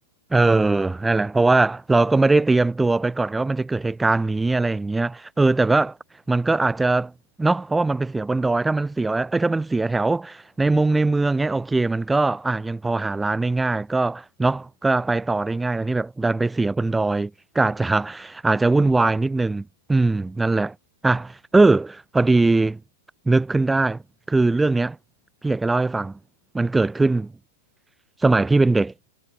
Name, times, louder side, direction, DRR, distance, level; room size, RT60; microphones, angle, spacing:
voice 1, 0.3-6.0 6.3-7.1 7.4-20.7 21.0-22.8 23.3-24.0 24.3-25.0 25.4-26.1 26.5-27.3 28.2-28.9, right 3 dB, 5° right, 2.4 m, -21 dB
hypercardioid pair, 145°, 0 cm